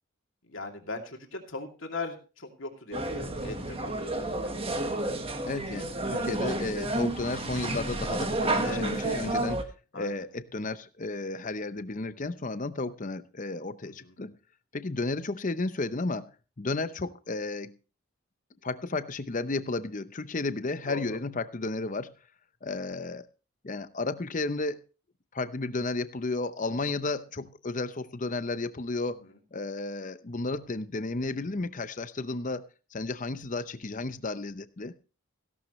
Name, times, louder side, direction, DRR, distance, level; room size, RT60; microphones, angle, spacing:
voice 1, 0.5-4.5 8.6-8.9 9.9-10.1 13.8-14.1 20.9-21.2, left 3 dB, 60° left, 3 dB, 2.6 m, -39 dB
sound 1, 2.9-9.6, right 2 dB, 25° right, 1.3 m, -31 dB
voice 2, 5.4-9.7 9.9-14.4 14.7-16.3 16.6-17.8 18.6-22.1 22.6-23.3 23.6-24.8 25.3-29.2 29.5-32.6 32.9-34.9, left 3 dB, 35° left, 13 dB, 0.7 m, -33 dB
16.0 x 12.0 x 3.1 m, 0.34 s
head